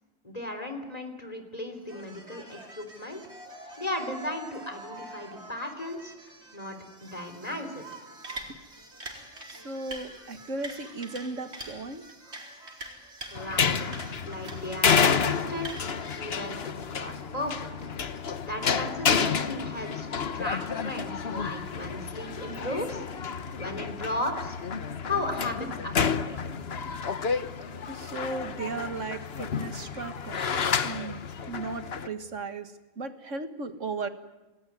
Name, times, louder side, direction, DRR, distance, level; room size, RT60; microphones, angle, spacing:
voice 1, 0.2-3.2 3.8-7.8 13.3-13.8 14.2-15.7 16.2-17.7 18.5-20.1 20.3-23.3 23.6-24.6 25.0-26.4, left 1 dB, 30° left, 6 dB, 3.7 m, -36 dB
sound 1, 1.8-16.2, right 1 dB, 60° right, 4.6 m, -45 dB
voice 2, 9.5-12.0 27.9-31.2 31.5-34.1, right 3 dB, 80° right, 9 dB, 2.1 m, -36 dB
sound 2, 13.3-32.1, left 6 dB, 55° left, 1.3 m, -30 dB
29.5 x 19.5 x 9.5 m, 1.1 s
omnidirectional pair, 1.3 m